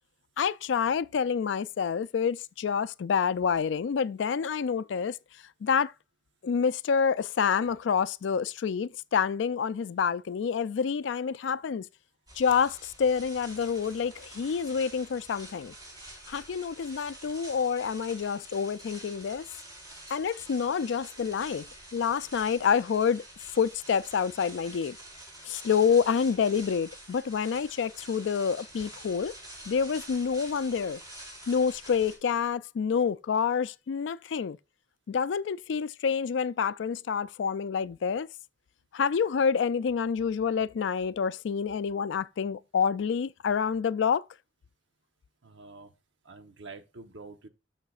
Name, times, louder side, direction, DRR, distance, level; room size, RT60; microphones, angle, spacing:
voice 1, 0.4-5.1 5.6-5.9 6.4-11.9 12.4-15.7 16.3-19.4 20.1-21.7 21.9-23.2 23.6-25.0 25.5-29.3 29.7-31.0 31.5-34.6 35.1-38.3 38.9-44.2, left 6 dB, 75° left, 0.4 m, -28 dB
sound 1, 12.3-32.2, right 1 dB, 20° right, 4.3 m, -47 dB
voice 2, 45.4-45.9 46.2-47.5, right 3 dB, 75° right, 1.0 m, -47 dB
13.0 x 5.7 x 2.4 m
head